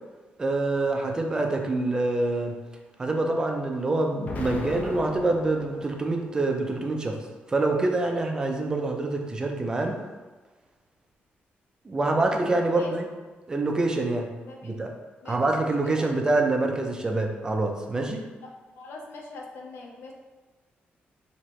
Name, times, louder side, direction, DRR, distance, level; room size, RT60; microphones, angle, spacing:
voice 1, 0.4-2.6 3.0-7.2 7.5-10.0 11.8-13.1 13.5-14.3 14.6-14.9 15.3-18.3, right 2 dB, 20° right, 3 dB, 0.4 m, -26 dB
Explosion, 4.2-6.3, left 2 dB, 40° left, 0.5 m, -37 dB
voice 2, 14.4-14.7 15.2-16.1 18.8-20.1, left 3 dB, 90° left, 0 dB, 0.6 m, -42 dB
4.5 x 2.9 x 3.0 m, 1.3 s
wide cardioid pair, 180°, 4 cm